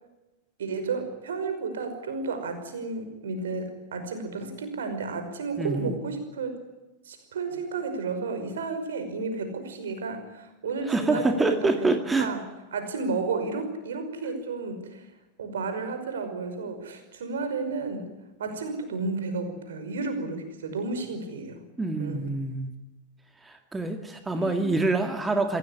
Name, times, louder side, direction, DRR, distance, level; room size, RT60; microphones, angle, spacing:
voice 1, 0.6-6.6 7.0-11.9 12.2-12.4 12.7-15.1 15.4-18.1 18.4-21.6 22.0-22.3 24.4-24.7, right 4 dB, 65° right, 8 dB, 5.5 m, -32 dB
voice 2, 5.6-5.9 10.9-12.3 21.8-22.7 23.4-25.6, right 3 dB, 10° right, 6 dB, 2.2 m, -26 dB
26.5 x 17.0 x 9.9 m, 1.0 s
figure-of-eight pair, 90°, 0 cm